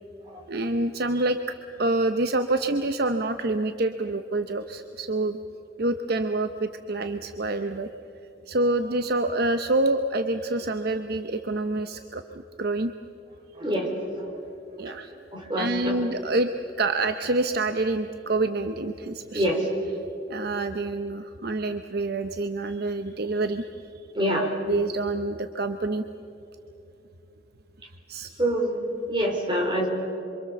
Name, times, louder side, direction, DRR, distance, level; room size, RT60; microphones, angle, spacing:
voice 1, 0.5-1.4 1.8-5.4 5.8-7.9 8.5-12.9 14.8-15.1 15.6-16.5 16.8-19.5 20.3-23.7 24.4-26.0 28.1-28.3, right 2 dB, 55° right, 8 dB, 0.8 m, -27 dB
voice 2, 13.5-14.4 14.8-15.0 15.3-16.0 19.3-19.6 24.1-24.5 28.4-29.9, right 1 dB, 25° right, 0 dB, 4.4 m, -26 dB
27.0 x 25.0 x 7.0 m, 3.0 s
head